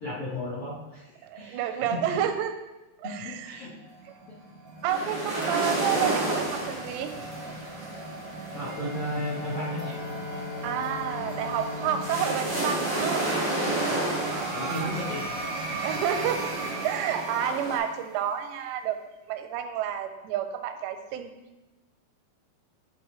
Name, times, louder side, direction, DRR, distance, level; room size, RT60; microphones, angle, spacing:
voice 1, 0.0-2.2 3.0-3.7 8.5-10.0 13.9-14.2 14.5-15.2 15.5-15.7, left 1 dB, 75° left, -7 dB, 1.2 m, -35 dB
voice 2, 1.2-2.5 3.0-3.6 4.8-7.1 10.6-13.3 14.3-15.1 15.8-16.5 16.8-19.0 19.3-21.3, right 9 dB, 90° right, 7 dB, 2.8 m, -30 dB
sound 1, 3.8-18.4, right 2 dB, 75° right, 1.3 m, -38 dB
sound 2, 4.9-17.8, right 1 dB, 40° right, 0.5 m, -32 dB
Bowed string instrument, 8.5-14.1, left 6 dB, 90° left, 3.0 m, -41 dB
12.0 x 4.3 x 3.1 m, 1.1 s
omnidirectional pair, 4.8 m